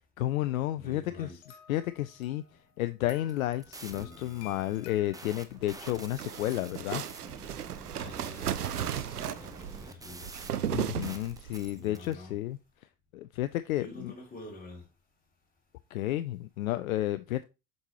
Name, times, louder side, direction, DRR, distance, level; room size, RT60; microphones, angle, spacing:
voice 1, 0.2-1.3 1.7-2.4 2.8-7.0 10.7-12.6 13.1-14.1 15.9-17.4, left 14 dB, 65° left, 0.5 m, -31 dB
voice 2, 0.8-1.6 3.9-4.6 7.9-10.8 11.7-12.4 13.8-14.9, left 1 dB, 20° left, 3.2 m, -48 dB
sound 1, 1.4-6.7, left 9 dB, 35° left, 1.1 m, -55 dB
sound 2, 3.2-12.1, right 3 dB, 10° right, 0.7 m, -48 dB
sound 3, 5.6-11.6, right 10 dB, 80° right, 0.6 m, -35 dB
7.9 x 5.3 x 2.9 m
figure-of-eight pair, 70°, 45 cm